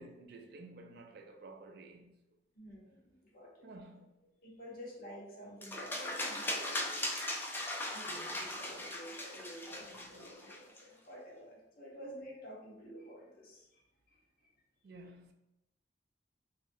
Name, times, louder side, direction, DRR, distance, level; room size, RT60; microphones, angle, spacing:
voice 1, 0.0-2.2 3.6-4.2 8.1-9.0 9.7-10.5 14.8-15.3, right 2 dB, 60° right, 0.4 m, -54 dB
voice 2, 2.5-3.7 4.4-7.3 7.9-13.8 14.1-14.2, equal, 55° left, 0.8 m, -50 dB
sound 1, 5.6-10.8, left 1 dB, 10° left, 0.4 m, -39 dB
3.0 x 2.4 x 2.6 m
head